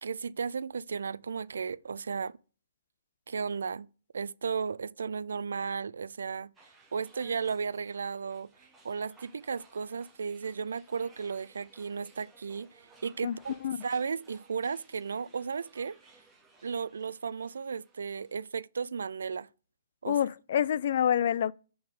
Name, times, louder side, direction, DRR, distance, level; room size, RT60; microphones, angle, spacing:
voice 1, 0.0-2.4 3.3-3.9 4.1-6.5 6.9-8.5 8.8-13.5 13.8-16.0 16.6-19.5 20.0-20.2, right 5 dB, 85° right, 0.4 m, -34 dB
sound 1, 6.5-18.5, right 3 dB, 10° right, 1.4 m, -61 dB
voice 2, 13.2-13.8 20.1-21.5, left 9 dB, 55° left, 0.3 m, -27 dB
6.3 x 4.6 x 3.7 m
hypercardioid pair, 150°, 0 cm